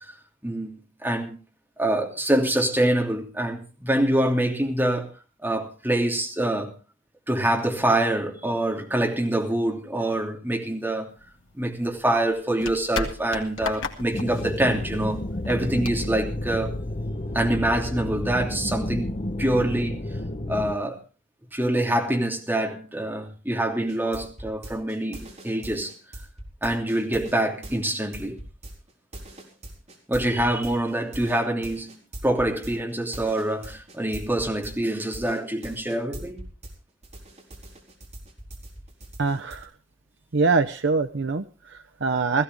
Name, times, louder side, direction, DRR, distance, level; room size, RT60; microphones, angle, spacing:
voice 1, 0.4-1.4 1.8-5.1 5.4-6.7 7.3-11.1 11.5-15.2 15.5-16.8 17.3-19.1 19.4-20.0 20.5-21.0 21.5-25.9 26.6-28.4 30.1-36.5, right 1 dB, 10° right, 1 dB, 2.9 m, -25 dB
sound 1, 11.1-17.1, left 3 dB, 75° left, 2.1 m, -37 dB
sound 2, 14.1-20.7, left 1 dB, 35° left, 0.9 m, -31 dB
sound 3, 23.9-36.7 37.0-39.7, right 1 dB, 35° right, 4.2 m, -41 dB
voice 2, 39.2-39.7 40.3-42.4, right 4 dB, 65° right, 9 dB, 0.7 m, -24 dB
18.0 x 15.0 x 3.5 m, 0.35 s
head